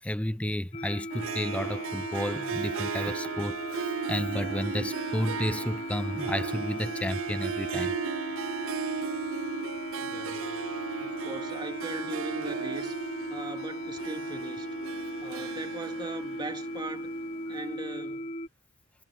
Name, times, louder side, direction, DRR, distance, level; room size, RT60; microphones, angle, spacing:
voice 1, 0.0-8.0 9.9-10.0, left 1 dB, 5° left, 0.6 m, -32 dB
sound 1, 0.7-18.5, left 1 dB, 35° left, 2.8 m, -38 dB
Harp, 1.1-17.6, right 6 dB, 65° right, 0.5 m, -36 dB
voice 2, 10.0-10.7 11.0-17.1 17.5-18.4, right 1 dB, 20° right, 3.0 m, -40 dB
head